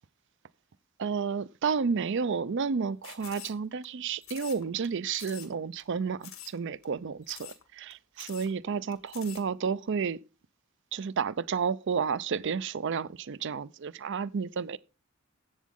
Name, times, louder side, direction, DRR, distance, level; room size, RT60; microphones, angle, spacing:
voice 1, 1.0-10.2 10.9-14.8, right 6 dB, 60° right, 0.5 m, -31 dB
sound 1, 3.0-3.9 4.2-4.9 5.1-5.5 5.8-5.9 6.2-6.6 6.8-6.9 7.2-7.6 7.9-8.0 8.2-8.5 8.9-9.4, left 11 dB, 90° left, 2.1 m, -46 dB
13.5 x 8.3 x 3.7 m
head